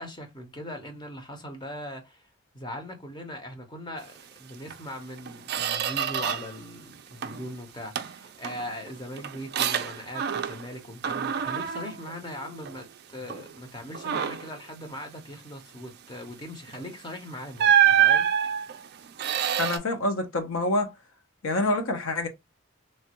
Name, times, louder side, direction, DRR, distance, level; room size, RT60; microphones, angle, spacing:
voice 1, 0.0-2.3 2.5-4.1 4.4-18.3, left 1 dB, 20° left, 0.7 m, -40 dB
Squeak, 4.7-4.8 5.2-6.6 6.9-7.5 8.0-10.8 11.0-12.9 13.3-13.5 13.9-14.6 16.7-16.9 17.6-19.8, right 9 dB, 45° right, 0.3 m, -26 dB
voice 2, 19.6-20.9 21.4-22.3, left 2 dB, 65° left, 0.7 m, -26 dB
3.1 x 2.3 x 2.8 m
head